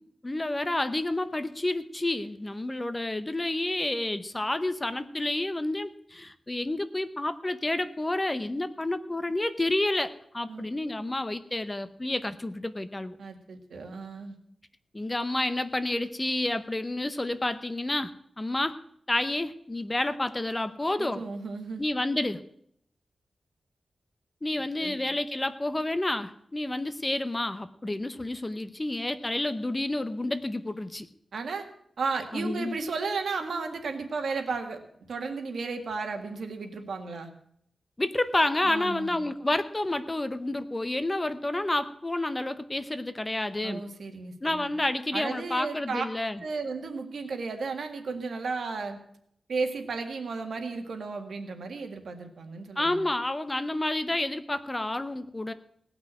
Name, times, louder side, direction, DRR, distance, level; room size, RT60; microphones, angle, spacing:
voice 1, 0.2-13.2 14.9-18.8 19.1-21.2 21.8-22.4 24.4-31.1 32.3-32.8 38.0-43.8 44.4-46.4 52.8-55.5, left 2 dB, 15° left, 11 dB, 0.7 m, -29 dB
voice 2, 13.2-14.4 21.0-21.8 24.8-25.0 31.3-31.7 32.0-34.8 35.1-37.3 38.7-39.3 43.6-44.7 45.1-46.1 46.4-49.0 49.5-53.0, right 4 dB, 75° right, 5 dB, 1.8 m, -34 dB
18.0 x 6.0 x 8.7 m, 0.69 s
wide cardioid pair, 160°, 0 cm